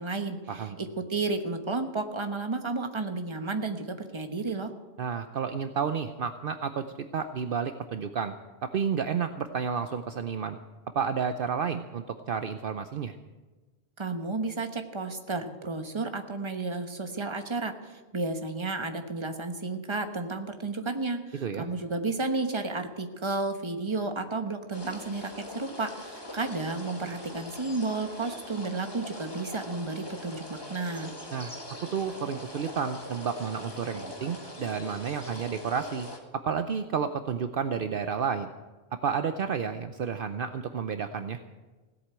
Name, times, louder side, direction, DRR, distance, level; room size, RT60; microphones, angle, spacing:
voice 1, 0.0-4.7 14.0-31.1, right 3 dB, 30° right, 6 dB, 1.2 m, -32 dB
voice 2, 5.0-6.8 7.1-8.3 8.6-10.6 10.9-13.2 21.4-21.7 31.3-31.5 31.9-38.5 39.0-41.4, right 6 dB, 60° right, 9 dB, 0.8 m, -31 dB
sound 1, 24.7-36.2, left 1 dB, 25° left, 1.9 m, -42 dB
17.0 x 8.2 x 8.8 m, 1.2 s
omnidirectional pair, 1.1 m